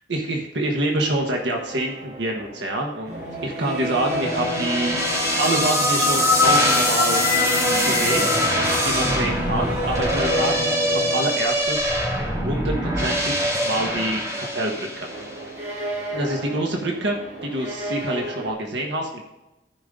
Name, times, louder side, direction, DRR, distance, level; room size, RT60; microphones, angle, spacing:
voice 1, 0.1-3.1 3.4-5.1 5.4-7.2 7.8-8.3 8.8-11.9 12.4-15.1 16.1-17.1 17.4-19.2, right 1 dB, 85° right, 1 dB, 1.4 m, -26 dB
sound 1, 0.9-11.9 15.1-18.5, equal, 65° right, 3.6 m, -30 dB
sound 2, 4.1-15.4, left 1 dB, 20° right, 2.6 m, -23 dB
15.0 x 5.2 x 3.8 m, 0.96 s
head